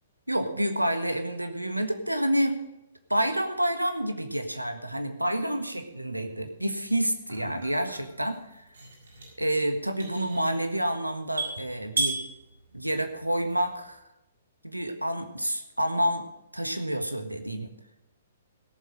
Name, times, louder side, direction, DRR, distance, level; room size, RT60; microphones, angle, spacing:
voice 1, 0.3-2.6 3.1-8.7 9.4-12.2 12.7-14.0 14.6-16.3 16.5-17.7, right 1 dB, 90° right, 8 dB, 1.4 m, -28 dB
sound 1, 6.4-13.9, right 3 dB, 65° right, 6.2 m, -37 dB
17.0 x 7.4 x 6.3 m, 0.91 s
figure-of-eight pair, 120°, 0 cm